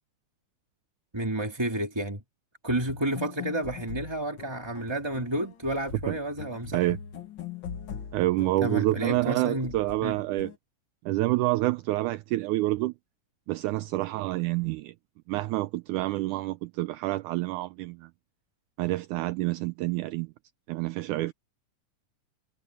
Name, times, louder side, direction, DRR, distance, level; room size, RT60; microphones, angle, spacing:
voice 1, 1.1-2.2 2.6-6.9 8.6-9.7 10.0-10.2, right 1 dB, 10° right, 1.5 m, -30 dB
sound 1, 2.7-10.6, left 7 dB, 55° left, 1.5 m, -42 dB
voice 2, 8.1-10.5 11.1-12.9 13.5-14.9 15.3-18.1 18.8-20.3 20.7-21.3, right 18 dB, 80° right, 1.9 m, -28 dB
omnidirectional pair, 3.8 m